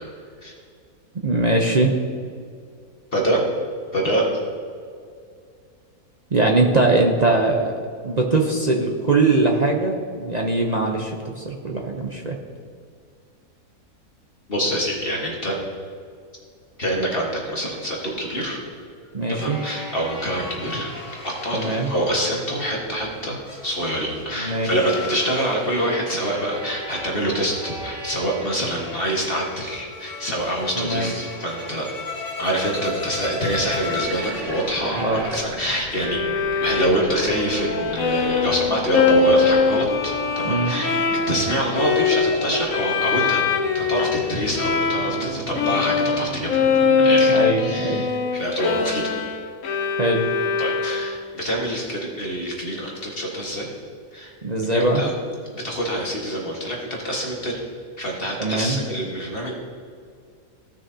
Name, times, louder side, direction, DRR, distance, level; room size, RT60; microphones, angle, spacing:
voice 1, 1.2-2.0 6.3-7.7 8.0-12.4 19.1-19.6 21.5-21.9 24.4-24.7 30.8-31.1 35.0-35.2 40.4-40.7 47.3-48.0 50.0-50.3 54.4-55.0 58.4-58.8, right 2 dB, 45° right, 0 dB, 0.6 m, -21 dB
voice 2, 3.9-4.3 14.5-15.6 16.8-18.6 19.3-20.9 21.2-31.9 32.4-36.2 36.6-40.9 41.3-43.4 43.7-46.6 47.0-49.2 50.6-53.7 54.1-54.3 54.7-55.1 55.5-57.6 58.0-59.5, equal, 40° left, -3 dB, 1.6 m, -25 dB
sound 1, 17.6-35.4, left 2 dB, 15° left, 1.4 m, -36 dB
sound 2, 33.5-47.6, equal, 85° right, 2.1 m, -37 dB
Bowed string instrument, 35.9-45.3 45.5-51.4, left 5 dB, 60° left, 1.2 m, -22 dB
16.0 x 6.3 x 2.8 m, 2.2 s
omnidirectional pair, 1.7 m